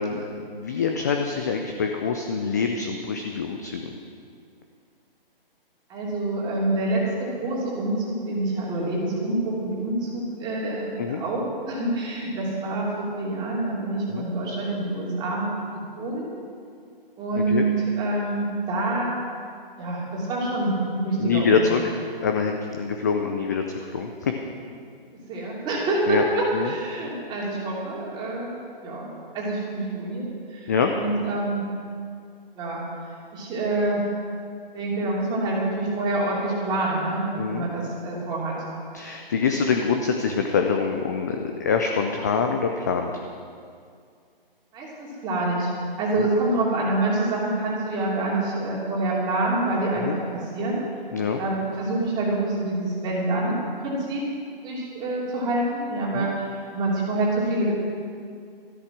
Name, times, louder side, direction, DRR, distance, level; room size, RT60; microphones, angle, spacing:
voice 1, 0.0-3.9 11.0-11.2 14.1-14.2 17.4-17.7 21.2-21.9 22.2-23.6 23.9-24.3 26.1-26.2 26.5-26.7 30.7-30.9 37.4-37.7 38.9-43.1 46.2-46.3 49.9-50.2 51.1-51.4 56.1-56.3, left 5 dB, 20° left, 4 dB, 0.4 m, -25 dB
voice 2, 5.9-15.5 16.0-16.3 17.2-19.2 19.8-21.6 25.3-31.6 32.6-32.8 33.3-34.0 34.7-38.5 44.7-45.7 46.0-50.1 50.3-50.8 51.4-53.6 53.8-54.2 54.6-56.5 56.7-57.7, right 2 dB, 15° right, -5 dB, 2.9 m, -26 dB
13.5 x 12.0 x 6.0 m, 2.2 s
figure-of-eight pair, 145°, 29 cm